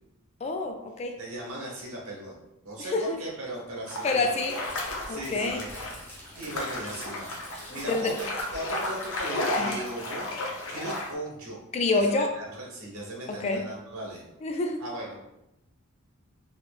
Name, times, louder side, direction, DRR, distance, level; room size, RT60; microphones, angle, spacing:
voice 1, 0.4-1.2 2.8-3.2 4.0-4.6 5.1-5.6 7.7-8.1 9.6-9.8 11.7-12.3 13.3-13.7 14.4-14.8, left 3 dB, 30° left, 4 dB, 0.3 m, -27 dB
voice 2, 1.2-2.3 2.6-4.4 5.1-5.7 6.3-7.3 7.7-10.3 10.7-11.6 11.9-14.3 14.8-15.2, right 1 dB, 70° right, -3 dB, 1.2 m, -38 dB
sound 1, 3.9-11.1, left 1 dB, 70° left, 0.7 m, -34 dB
Crumpling crinkling, 4.3-10.2, equal, 10° left, 1.0 m, -47 dB
3.8 x 2.9 x 2.4 m, 0.89 s
head